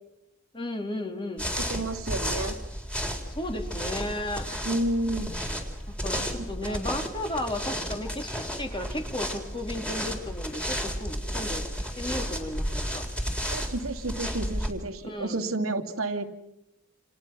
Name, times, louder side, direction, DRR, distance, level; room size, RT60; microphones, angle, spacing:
voice 1, 0.5-1.5 3.2-4.5 5.9-11.6 12.0-13.1 15.0-15.4, left 1 dB, 25° left, 4 dB, 3.1 m, -34 dB
sound 1, 1.4-14.7, equal, 5° left, 3.8 m, -33 dB
voice 2, 1.6-2.6 4.6-5.3 6.1-6.3 6.6-6.9 13.5-16.2, right 2 dB, 85° right, 4 dB, 2.6 m, -31 dB
29.5 x 28.5 x 6.2 m, 0.88 s
head